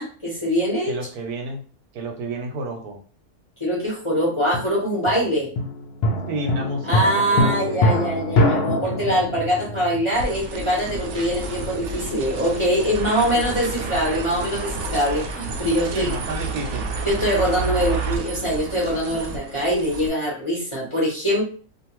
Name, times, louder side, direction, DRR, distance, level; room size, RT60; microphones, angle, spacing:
voice 1, 0.0-0.9 3.6-5.5 6.8-16.1 17.0-21.4, equal, 25° left, -6 dB, 0.9 m, -23 dB
voice 2, 0.9-1.6 1.9-3.0 6.3-7.8 15.9-16.9, right 2 dB, 85° right, 3 dB, 1.2 m, -30 dB
sound 1, 4.5-10.9 18.4-19.5, left 1 dB, 85° left, 0.5 m, -24 dB
sound 2, 10.1-20.1, right 4 dB, 65° right, 0.7 m, -30 dB
2.6 x 2.4 x 2.9 m, 0.40 s
omnidirectional pair, 1.6 m